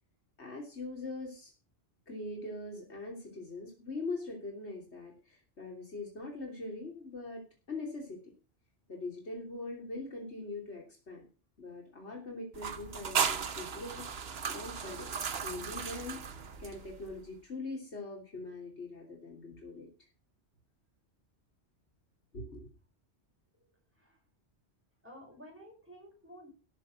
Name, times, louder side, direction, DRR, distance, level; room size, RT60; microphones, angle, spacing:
voice 1, 0.4-1.5 2.1-7.4 7.7-8.2 8.9-11.3 11.6-14.0 14.4-15.1 15.4-16.2 16.6-19.9 22.3-22.7, left 2 dB, 85° left, 0 dB, 3.5 m, -42 dB
sound 1, 12.5-17.1, right 6 dB, 65° right, 1.3 m, -36 dB
voice 2, 25.0-26.5, equal, 10° right, 0 dB, 5.4 m, -52 dB
13.5 x 6.8 x 6.3 m, 0.35 s
omnidirectional pair, 1.1 m